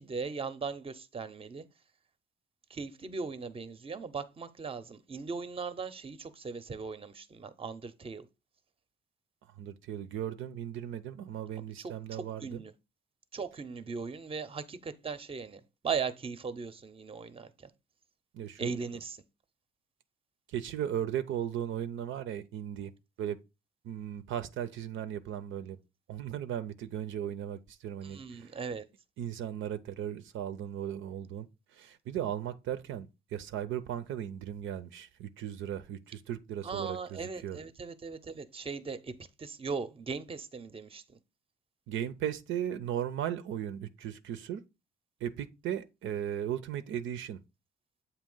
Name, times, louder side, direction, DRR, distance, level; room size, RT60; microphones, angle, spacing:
voice 1, 0.0-1.6 2.7-8.3 11.8-12.7 13.3-17.7 18.6-19.2 28.0-28.8 36.6-39.1 39.4-41.2, right 5 dB, 30° right, 0.7 m, -38 dB
voice 2, 9.6-12.6 18.3-18.7 20.5-22.9 23.2-23.4 23.8-25.8 26.1-28.6 29.2-37.6 41.9-44.6 45.2-47.4, right 10 dB, 80° right, 0.6 m, -37 dB
7.6 x 2.8 x 5.5 m
cardioid pair, 90°, 20 cm